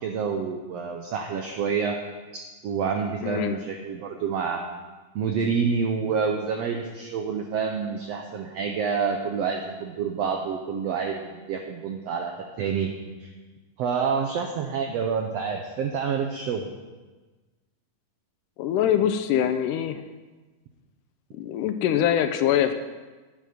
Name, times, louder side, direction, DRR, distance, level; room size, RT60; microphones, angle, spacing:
voice 1, 0.0-2.0 2.6-4.6 5.1-12.9 13.2-13.3 13.8-16.7, right 6 dB, 80° right, 3 dB, 1.4 m, -28 dB
voice 2, 3.2-3.6 18.6-20.0 21.3-22.7, left 10 dB, 80° left, 9 dB, 2.0 m, -23 dB
11.0 x 9.2 x 5.1 m, 1.3 s
omnidirectional pair, 3.9 m